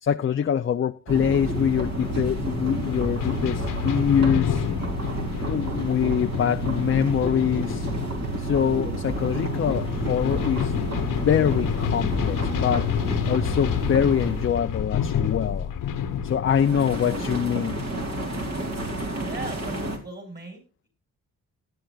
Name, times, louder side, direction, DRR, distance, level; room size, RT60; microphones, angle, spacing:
voice 1, 0.0-4.7 5.4-7.9 8.4-12.9 13.3-15.7 16.2-17.8, left 8 dB, 40° left, 0.5 m, -24 dB
sound 1, 1.1-14.6 16.5-20.0, right 2 dB, 50° right, 2.8 m, -30 dB
sound 2, 1.5-19.1, left 8 dB, 75° left, 1.1 m, -30 dB
voice 2, 19.1-20.6, right 3 dB, 30° right, 4.8 m, -38 dB
17.5 x 10.0 x 2.4 m
wide cardioid pair, 120°, 33 cm